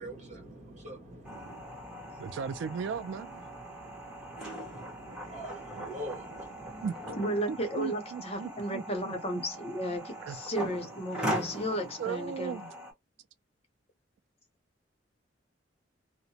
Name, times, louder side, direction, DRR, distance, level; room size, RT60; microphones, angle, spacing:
voice 1, 0.0-2.4 3.6-6.9, right 1 dB, 40° right, 1.4 m, -45 dB
sound 1, 1.2-12.9, right 1 dB, 5° right, 1.2 m, -40 dB
voice 2, 2.2-3.3 5.7-5.9 6.8-6.9 7.5-9.1 10.3-10.4 12.0-12.7, right 6 dB, 80° right, 0.3 m, -36 dB
voice 3, 7.2-12.6, equal, 35° left, 0.8 m, -34 dB
2.8 x 2.1 x 2.7 m
head